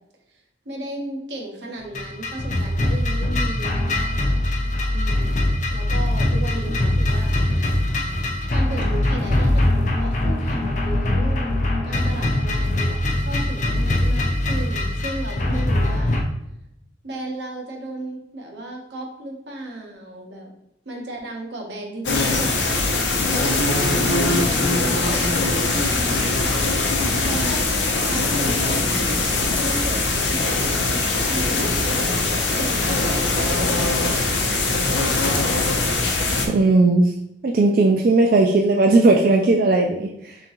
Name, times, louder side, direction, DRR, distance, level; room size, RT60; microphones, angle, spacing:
voice 1, 0.3-4.0 4.9-7.9 8.5-16.2 17.0-20.5 20.8-26.4 27.0-27.6 28.1-31.6 31.9-34.3, right 1 dB, 80° right, 1 dB, 1.0 m, -35 dB
sound 1, 1.9-16.2, left 1 dB, 40° left, 0.5 m, -22 dB
sound 2, 22.0-36.5, left 2 dB, 85° left, 0.7 m, -21 dB
voice 2, 36.5-37.1 37.4-40.4, right 2 dB, 50° right, 1 dB, 0.3 m, -17 dB
3.7 x 3.5 x 3.0 m, 0.82 s
head